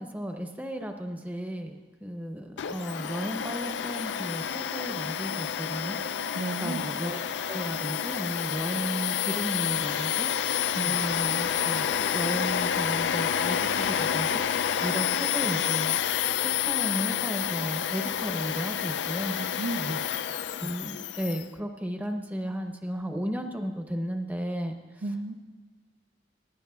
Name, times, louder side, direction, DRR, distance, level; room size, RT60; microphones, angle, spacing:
voice 1, 0.0-6.0 6.6-7.2 7.5-10.3 10.7-14.4 14.8-16.0 16.4-19.4 20.6-24.8, equal, 10° right, 4 dB, 0.7 m, -34 dB
Domestic sounds home sounds, 2.6-21.4, left 9 dB, 65° left, 0.3 m, -29 dB
voice 2, 6.3-6.8 10.7-11.0 19.4-20.1 25.0-25.3, right 2 dB, 50° right, 3 dB, 0.7 m, -33 dB
23.0 x 10.5 x 2.3 m, 1.4 s
head